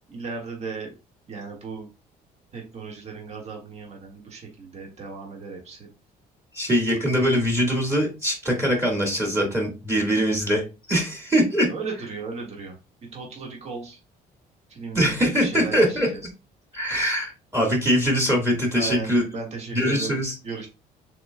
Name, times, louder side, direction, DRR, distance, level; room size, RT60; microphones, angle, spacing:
voice 1, 0.1-0.9 1.3-1.9 2.5-5.9 11.7-12.7 13.1-14.0 14.7-16.2 16.7-16.9 18.7-20.7, right 5 dB, 40° right, -1 dB, 1.6 m, -36 dB
voice 2, 6.5-10.6 10.9-11.7 14.9-16.1 16.7-19.3 19.7-20.3, equal, 15° right, 0 dB, 1.6 m, -22 dB
6.5 x 3.6 x 2.2 m, 0.30 s
cardioid pair, 110°, 17 cm